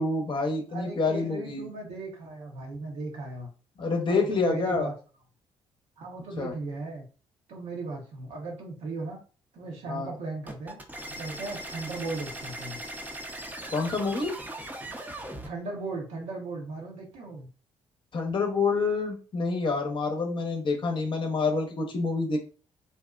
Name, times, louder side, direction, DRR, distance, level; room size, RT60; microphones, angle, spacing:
voice 1, 0.0-1.7 3.8-4.9 6.4-6.5 9.9-10.1 13.7-14.3 18.1-22.4, left 4 dB, 40° left, 2 dB, 0.8 m, -27 dB
voice 2, 0.7-3.5 4.1-4.9 6.0-7.0 7.5-9.2 9.5-10.8 11.1-12.8 15.4-17.5, right 3 dB, 70° right, 0 dB, 0.8 m, -37 dB
sound 1, 10.5-15.5, right 1 dB, 15° right, 0.6 m, -39 dB
2.6 x 2.1 x 2.3 m, 0.37 s
hypercardioid pair, 55°, 12 cm